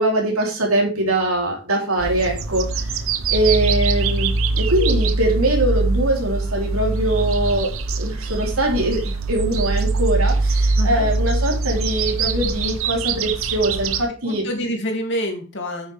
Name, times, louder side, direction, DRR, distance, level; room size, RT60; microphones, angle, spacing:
voice 1, 0.0-2.6 3.3-4.3 4.7-7.7 8.0-9.0 9.3-10.3 10.8-13.9 14.2-14.4, right 1 dB, 90° right, 0 dB, 3.2 m, -21 dB
sound 1, 2.0-14.0, right 3 dB, 70° right, 0.9 m, -22 dB
voice 2, 14.2-15.9, equal, 55° left, 3 dB, 2.5 m, -27 dB
9.4 x 8.6 x 3.4 m, 0.34 s
head